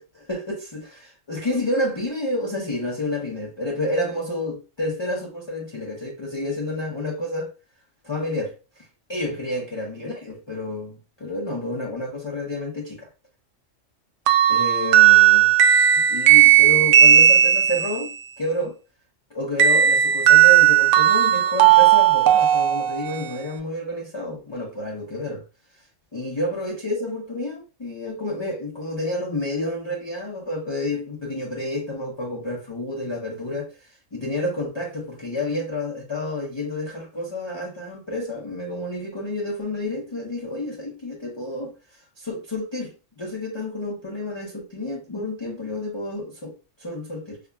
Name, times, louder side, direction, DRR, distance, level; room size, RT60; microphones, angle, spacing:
voice 1, 0.1-7.5 8.0-13.1 14.5-15.5 16.1-18.1 18.4-18.8 19.3-25.4 26.1-41.7 42.2-46.5 46.8-47.4, left 1 dB, 30° left, 0.5 m, -29 dB
sound 1, 14.3-18.0 19.6-23.4, right 11 dB, 75° right, 1.0 m, -15 dB
5.7 x 2.1 x 2.2 m
omnidirectional pair, 1.3 m